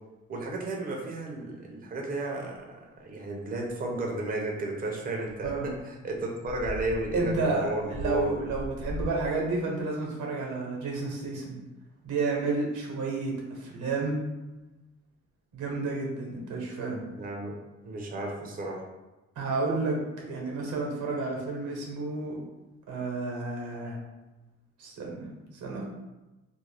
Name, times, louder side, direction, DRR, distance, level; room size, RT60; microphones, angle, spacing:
voice 1, 0.3-8.3 17.2-17.6 17.8-18.8, right 2 dB, 30° right, 0 dB, 0.5 m, -33 dB
sound 1, 5.4-5.8 6.2-6.3 6.4-9.3, equal, 50° left, 0.5 m, -38 dB
voice 2, 7.1-11.6 12.0-14.2 15.5-17.0 19.4-22.4 22.9-24.0 24.8-25.8, right 3 dB, 80° right, -1 dB, 0.9 m, -31 dB
2.5 x 2.0 x 3.3 m, 1.1 s
cardioid pair, 90°, 30 cm